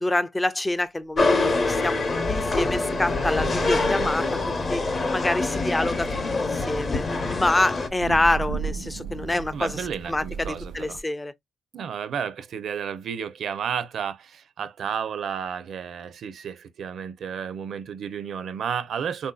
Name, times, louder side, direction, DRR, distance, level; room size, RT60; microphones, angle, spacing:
voice 1, 0.0-2.0 2.3-4.8 5.1-6.1 6.4-11.3, left 2 dB, 15° left, 0.4 m, -26 dB
sound 1, 1.2-7.9, left 3 dB, 35° left, 0.7 m, -25 dB
Thunder / Rain, 1.3-11.0, right 6 dB, 85° right, 0.9 m, -38 dB
voice 2, 9.5-11.0 11.7-19.3, right 7 dB, 60° right, 0.5 m, -32 dB
3.5 x 2.6 x 2.2 m
cardioid pair, 90°, 0 cm